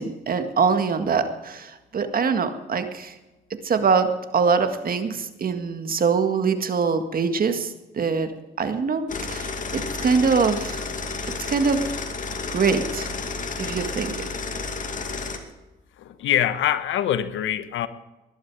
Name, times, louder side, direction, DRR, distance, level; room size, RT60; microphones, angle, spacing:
voice 1, 0.0-3.2 3.6-10.9 11.4-11.8 12.5-13.1 13.6-14.3, right 5 dB, 45° right, 8 dB, 1.9 m, -23 dB
sound 1, 9.1-15.4, left 4 dB, 40° left, 2.3 m, -31 dB
voice 2, 16.0-17.9, left 11 dB, 80° left, 12 dB, 1.1 m, -24 dB
19.5 x 12.0 x 4.8 m, 1.1 s
cardioid pair, 90°, 20 cm